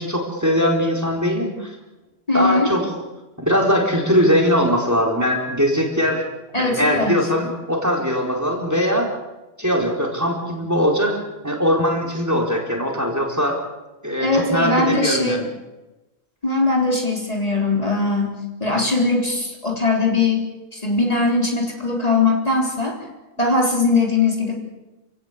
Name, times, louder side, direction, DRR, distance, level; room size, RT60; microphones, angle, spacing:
voice 1, 0.0-1.7 2.3-2.9 3.4-6.2 6.6-9.1 9.6-11.2 11.4-13.6 14.0-15.5, equal, 15° right, 0 dB, 4.3 m, -20 dB
voice 2, 2.3-2.7 6.5-7.3 14.2-15.4 16.4-20.4 20.7-23.0 23.4-24.5, left 3 dB, 35° left, -1 dB, 3.8 m, -20 dB
28.0 x 17.0 x 8.2 m, 1.1 s
omnidirectional pair, 1.1 m